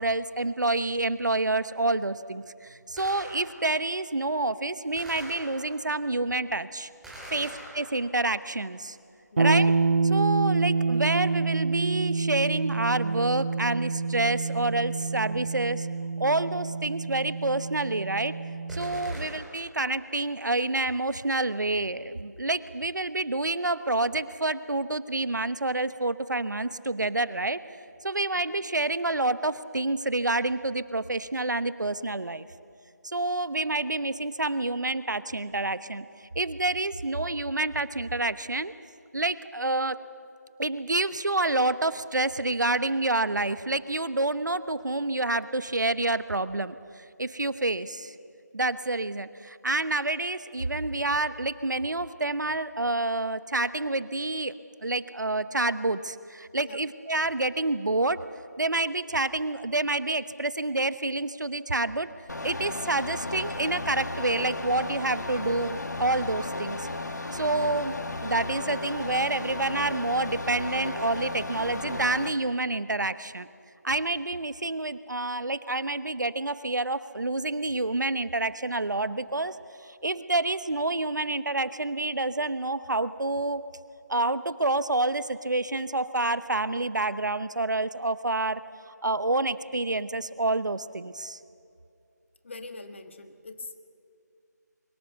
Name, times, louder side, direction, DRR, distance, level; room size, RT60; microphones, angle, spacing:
voice 1, 0.0-6.9 7.3-9.0 9.4-9.7 10.0-15.9 16.2-18.4 18.7-27.6 28.0-32.5 33.0-36.1 36.3-38.7 39.1-40.0 40.6-48.1 48.5-58.2 58.6-62.1 62.4-66.9 67.3-73.5 73.8-83.6 84.1-88.6 89.0-91.4, right 2 dB, 80° right, 14 dB, 1.1 m, -28 dB
Gunshot gunfire, 3.0-3.8 5.0-5.9 7.0-8.3 18.7-19.8, equal, ahead, 3.0 m, -43 dB
sound 1, 9.4-19.1, right 4 dB, 45° right, 0.8 m, -27 dB
sound 2, 62.3-72.3, left 2 dB, 70° left, 2.2 m, -34 dB
voice 2, 92.4-93.8, left 3 dB, 40° left, 8 dB, 1.7 m, -43 dB
24.0 x 22.5 x 6.9 m, 2.5 s
figure-of-eight pair, 165°, 10 cm